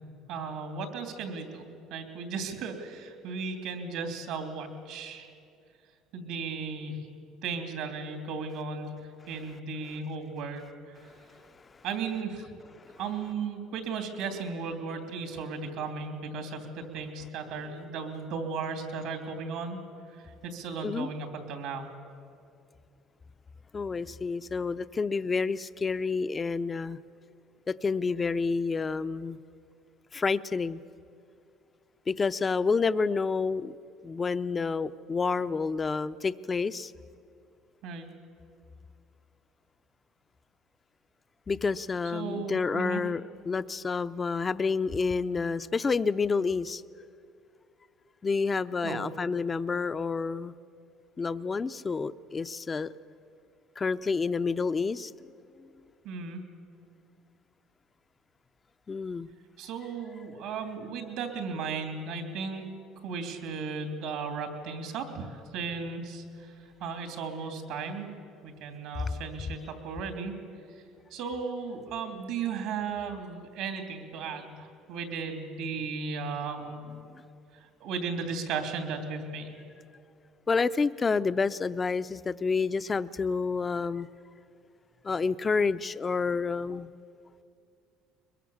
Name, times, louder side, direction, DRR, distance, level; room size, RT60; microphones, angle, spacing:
voice 1, 0.3-1.6 1.9-5.3 6.1-7.0 7.4-9.0 9.3-10.7 11.8-12.5 13.0-19.8 20.2-21.9 37.8-38.1 42.1-43.0 48.8-49.0 56.0-56.4 59.6-62.7 63.0-66.5 66.8-68.1 68.4-70.4 71.1-76.9 77.8-79.5, right 5 dB, 75° right, 5 dB, 3.0 m, -35 dB
voice 2, 23.7-27.0 27.7-29.4 30.1-30.8 32.1-33.8 34.0-36.9 41.5-46.8 48.2-50.6 51.2-52.9 53.8-55.1 55.6-55.7 58.9-59.3 80.5-84.1 85.0-86.9, left 4 dB, 25° left, 13 dB, 0.5 m, -29 dB
22.0 x 22.0 x 7.3 m, 2.4 s
cardioid pair, 115°, 0 cm